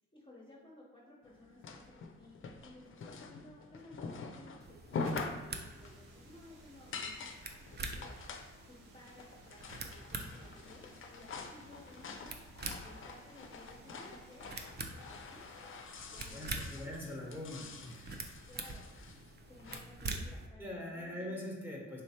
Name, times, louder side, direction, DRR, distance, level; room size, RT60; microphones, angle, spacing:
voice 1, 0.1-7.2 7.8-8.2 8.7-15.5 16.1-16.9 17.5-17.7 18.5-18.9 19.5-21.4, left 1 dB, 15° left, -6 dB, 0.8 m, -57 dB
sound 1, 1.2-19.8, left 4 dB, 45° left, 0.5 m, -46 dB
sound 2, 4.6-20.5, right 3 dB, 35° right, 0.5 m, -46 dB
sound 3, 5.7-15.7, right 2 dB, 85° right, 0.7 m, -64 dB
voice 2, 16.3-17.9 20.6-22.0, left 1 dB, 5° right, -4 dB, 1.1 m, -42 dB
3.2 x 3.1 x 2.8 m, 1.1 s
supercardioid pair, 45°, 30 cm